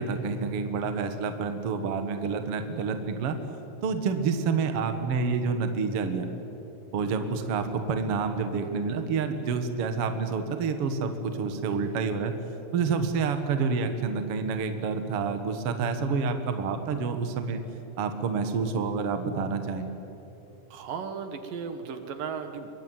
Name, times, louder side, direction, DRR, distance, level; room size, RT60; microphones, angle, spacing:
voice 1, 0.0-3.3 3.8-6.3 6.9-12.3 12.7-17.6 18.0-19.8, right 5 dB, 80° right, 7 dB, 1.3 m, -28 dB
voice 2, 20.7-22.7, right 6 dB, 60° right, 7 dB, 2.6 m, -35 dB
26.5 x 23.0 x 9.3 m, 3.0 s
omnidirectional pair, 5.5 m